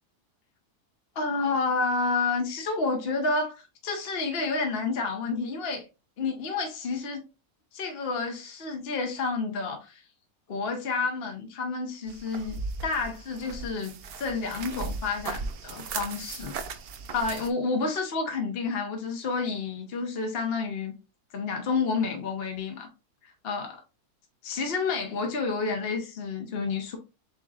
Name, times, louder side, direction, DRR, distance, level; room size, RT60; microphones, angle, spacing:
voice 1, 1.1-5.8 6.2-7.2 7.7-10.0 10.5-16.5 17.1-20.9 21.3-22.9 23.2-23.8 24.4-27.0, left 4 dB, 45° left, 1.0 m, -30 dB
sound 1, 12.1-17.5, right 4 dB, 75° right, 0.5 m, -37 dB
6.9 x 3.0 x 2.4 m
omnidirectional pair, 1.7 m